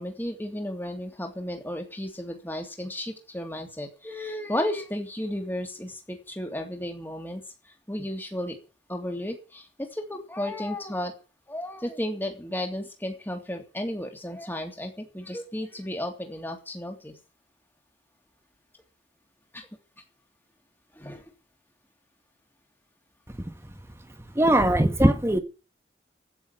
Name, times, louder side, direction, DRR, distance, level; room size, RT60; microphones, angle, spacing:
voice 1, 0.0-8.6 8.9-11.1 11.5-17.2 19.5-19.7 20.9-21.3, left 1 dB, 10° left, 3 dB, 3.1 m, -33 dB
voice 2, 24.3-25.4, right 1 dB, 15° right, 9 dB, 1.5 m, -21 dB
15.5 x 7.2 x 9.0 m, 0.35 s
head